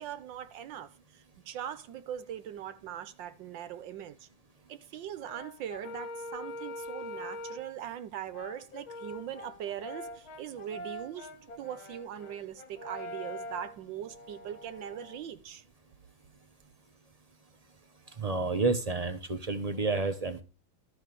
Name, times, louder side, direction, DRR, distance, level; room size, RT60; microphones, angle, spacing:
voice 1, 0.0-4.3 4.7-11.3 11.6-15.6, right 10 dB, 70° right, 1.4 m, -41 dB
Brass instrument, 5.2-7.7 8.3-15.3, left 1 dB, 80° left, 2.7 m, -43 dB
voice 2, 18.2-20.4, right 3 dB, 35° right, 0.5 m, -30 dB
12.5 x 5.0 x 6.6 m
omnidirectional pair, 2.2 m